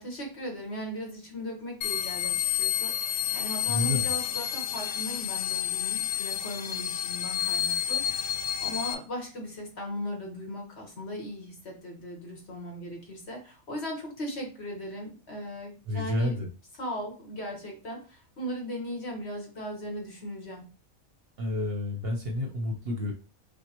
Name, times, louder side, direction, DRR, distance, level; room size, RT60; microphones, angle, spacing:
voice 1, 0.0-16.4 16.8-20.6, equal, 50° left, 1 dB, 1.5 m, -38 dB
sound 1, 1.8-8.9, left 11 dB, 90° left, 1.0 m, -30 dB
voice 2, 3.6-4.1 15.9-16.5 21.4-23.1, left 1 dB, 50° right, 1 dB, 0.9 m, -30 dB
6.1 x 2.1 x 2.9 m, 0.33 s
omnidirectional pair, 1.4 m